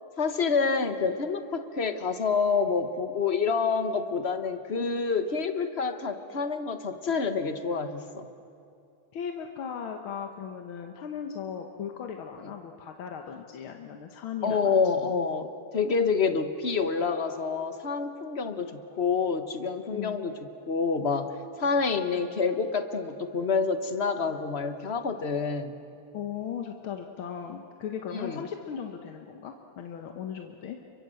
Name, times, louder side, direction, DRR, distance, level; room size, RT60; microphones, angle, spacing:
voice 1, 0.2-8.3 14.4-20.3 20.7-25.7 28.1-28.4, left 5 dB, 35° left, 9 dB, 1.3 m, -28 dB
voice 2, 9.1-15.1 19.9-20.2 26.1-31.0, left 8 dB, 85° left, 4 dB, 2.0 m, -37 dB
30.0 x 23.5 x 7.8 m, 2.5 s
omnidirectional pair, 2.2 m